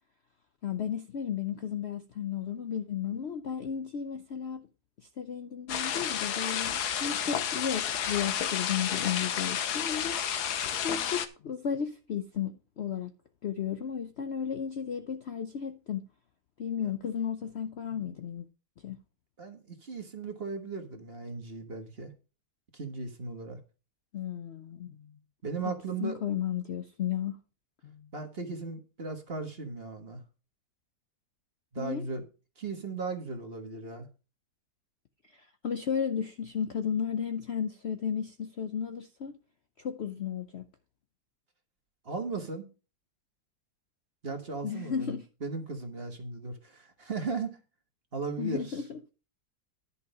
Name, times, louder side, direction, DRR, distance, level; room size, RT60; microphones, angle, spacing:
voice 1, 0.6-4.7 5.2-10.2 10.8-13.1 13.4-16.0 16.6-18.5 18.8-19.0 24.1-25.2 26.0-27.4 27.8-28.1 31.8-32.0 35.3-39.4 39.8-40.6 44.6-45.3 48.4-49.1, left 8 dB, 55° left, 0.7 m, -34 dB
sound 1, 5.7-11.3, left 9 dB, 75° left, 1.4 m, -31 dB
voice 2, 19.4-22.1 22.7-23.6 25.4-26.2 28.1-30.2 31.7-32.3 32.6-34.1 42.0-42.6 44.2-47.6 48.1-48.8, right 4 dB, 40° right, 1.5 m, -37 dB
11.0 x 5.6 x 5.3 m
omnidirectional pair, 1.8 m